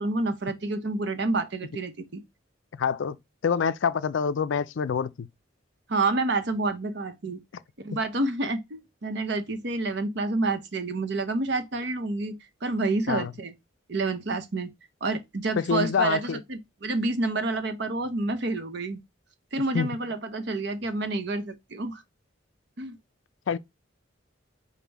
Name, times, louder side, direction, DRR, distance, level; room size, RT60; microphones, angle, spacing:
voice 1, 0.0-2.2 5.9-7.4 7.8-12.3 12.6-13.5 13.9-14.7 15.0-19.0 19.5-22.0 22.8-23.0, right 2 dB, 60° right, 0.8 m, -28 dB
voice 2, 2.8-3.2 3.4-5.3 13.1-13.3 15.6-16.4 19.7-19.9 23.5-23.6, left 6 dB, 75° left, 0.4 m, -26 dB
5.3 x 2.2 x 4.5 m
head